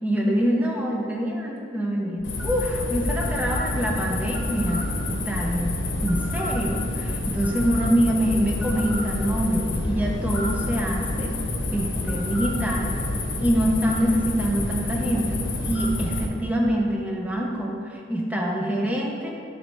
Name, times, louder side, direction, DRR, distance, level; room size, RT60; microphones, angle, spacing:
voice 1, 0.0-5.7 6.0-11.3 11.7-12.9 13.4-19.3, equal, 5° right, -1 dB, 0.6 m, -25 dB
sound 1, 2.2-16.3, left 2 dB, 75° left, 0.8 m, -28 dB
7.4 x 3.3 x 5.3 m, 2.6 s
head